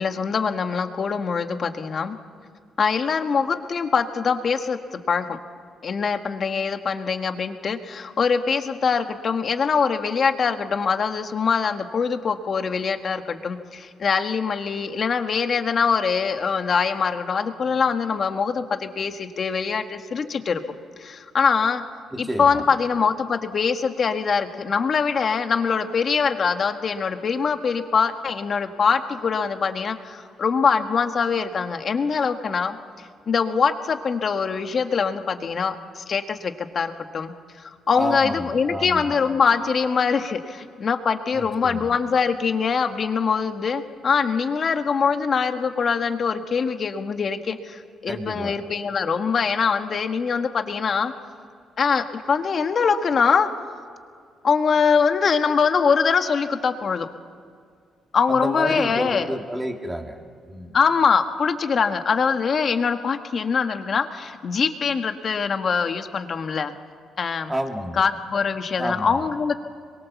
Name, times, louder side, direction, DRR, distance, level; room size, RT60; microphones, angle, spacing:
voice 1, 0.0-2.2 2.8-4.8 5.1-5.4 5.8-20.6 21.0-21.8 22.2-32.8 33.3-37.3 37.9-51.1 51.8-53.5 54.4-57.1 58.1-59.3 60.7-66.7 67.2-67.5 67.9-69.6, left 5 dB, 45° left, 7 dB, 1.6 m, -23 dB
voice 2, 22.1-22.6 37.9-39.1 41.3-41.9 48.1-48.6 58.3-60.2 60.5-60.8 67.5-68.0 68.8-69.2, right 1 dB, 10° right, 3 dB, 2.5 m, -30 dB
26.0 x 23.0 x 7.1 m, 2.2 s
cardioid pair, 120°, 0 cm